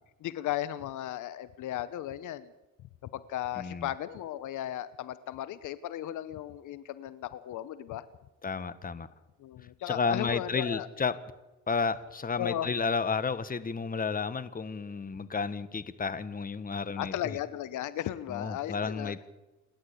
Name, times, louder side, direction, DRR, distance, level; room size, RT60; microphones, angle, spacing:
voice 1, 0.2-2.5 3.0-8.0 9.4-10.9 12.4-12.7 17.0-19.1, left 12 dB, 80° left, 15 dB, 1.0 m, -36 dB
voice 2, 3.6-3.9 8.4-9.1 9.9-11.1 11.7-17.1 18.3-19.3, left 5 dB, 30° left, 14 dB, 1.4 m, -32 dB
28.5 x 11.0 x 8.3 m, 1.1 s
cardioid pair, 90°, 30 cm